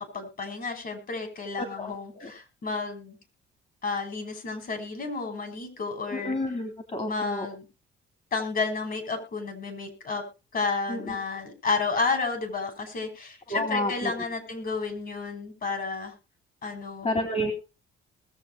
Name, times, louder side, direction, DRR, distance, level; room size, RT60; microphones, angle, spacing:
voice 1, 0.0-3.2 3.8-6.4 7.1-7.7 8.3-10.2 10.5-16.1 16.6-17.1, left 4 dB, 50° left, 7 dB, 6.3 m, -31 dB
voice 2, 1.8-2.3 6.1-7.5 10.9-11.1 13.5-14.1 17.0-17.5, left 1 dB, 35° left, 5 dB, 3.5 m, -30 dB
21.0 x 7.7 x 4.2 m, 0.31 s
cardioid pair, 90°, 20 cm